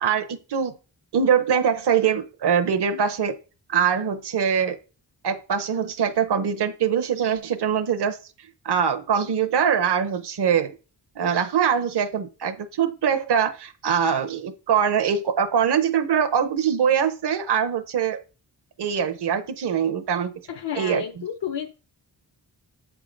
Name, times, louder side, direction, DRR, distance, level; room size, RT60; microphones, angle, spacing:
voice 1, 0.0-0.8 1.1-3.4 3.7-4.8 5.2-8.2 8.6-10.7 11.2-18.2 18.8-20.3 20.8-21.0, right 7 dB, 65° right, 7 dB, 0.8 m, -23 dB
voice 2, 20.5-21.7, left 8 dB, 70° left, 6 dB, 0.7 m, -31 dB
7.9 x 3.7 x 5.1 m, 0.34 s
wide cardioid pair, 85°, 43 cm